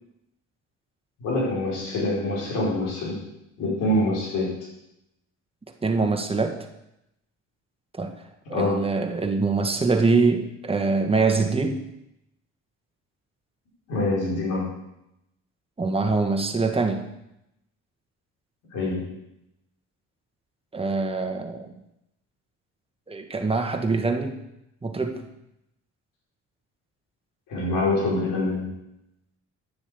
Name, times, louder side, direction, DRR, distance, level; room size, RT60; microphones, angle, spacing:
voice 1, 1.2-3.2 3.6-4.6 8.5-8.9 13.9-14.7 18.7-19.1 27.5-28.7, left 1 dB, 85° left, -4 dB, 4.8 m, -25 dB
voice 2, 5.8-6.7 7.9-8.2 8.5-11.8 15.8-17.0 20.7-21.7 23.1-24.4 24.8-25.3, right 3 dB, 20° right, 4 dB, 1.5 m, -24 dB
9.9 x 7.3 x 6.9 m, 0.85 s
cardioid pair, 90°, 30 cm